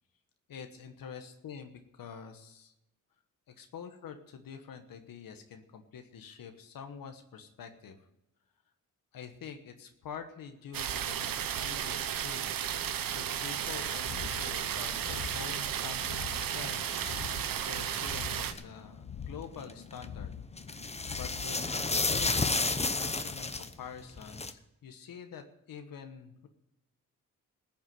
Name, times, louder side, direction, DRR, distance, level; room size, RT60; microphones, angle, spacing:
voice 1, 0.5-2.7 3.6-8.0 9.1-12.6 13.1-20.3 20.7-20.8 21.2-26.5, left 7 dB, 85° left, 6 dB, 1.2 m, -46 dB
sound 1, 10.7-18.5, right 9 dB, 85° right, 0.9 m, -34 dB
sound 2, 13.8-22.8, left 8 dB, 50° left, 1.0 m, -45 dB
sound 3, 13.8-18.6 19.2-20.2 20.5-24.5, left 3 dB, 20° left, 0.9 m, -33 dB
14.5 x 7.2 x 9.2 m, 0.88 s
cardioid pair, 60°, 33 cm